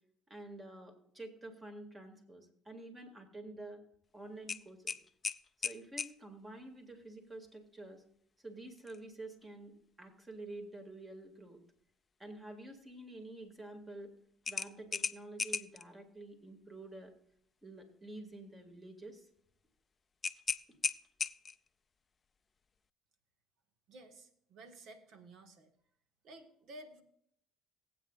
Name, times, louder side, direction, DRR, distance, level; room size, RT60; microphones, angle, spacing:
voice 1, 0.3-3.8 4.1-5.0 5.6-8.0 8.4-11.6 12.2-14.1 14.5-17.1 17.6-19.3, right 2 dB, 20° right, 4 dB, 2.4 m, -49 dB
sound 1, 4.5-6.2 8.8-9.0 9.4-9.5 14.5-15.8 20.2-21.7, left 5 dB, 30° left, 0.4 m, -37 dB
voice 2, 23.9-25.7 26.2-27.0, right 1 dB, 65° right, 7 dB, 1.7 m, -53 dB
19.0 x 8.6 x 2.5 m, 0.68 s
cardioid pair, 95°, 0 cm